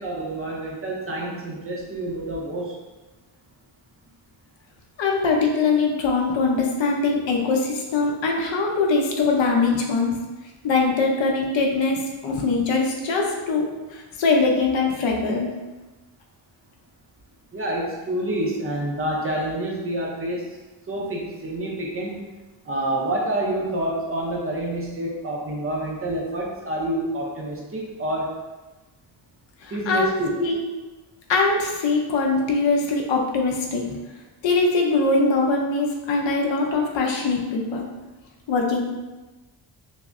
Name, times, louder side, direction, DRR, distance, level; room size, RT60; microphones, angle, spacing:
voice 1, 0.0-2.8 17.5-20.6 20.9-22.1 22.6-28.4 29.7-30.3, right 1 dB, 30° right, -3 dB, 0.5 m, -28 dB
voice 2, 5.0-10.2 10.6-15.5 29.6-30.1 30.4-30.6 31.3-34.0 34.4-37.9 38.5-38.8, left 3 dB, 75° left, 0 dB, 0.7 m, -22 dB
5.6 x 2.0 x 2.5 m, 1.2 s
wide cardioid pair, 180°, 45 cm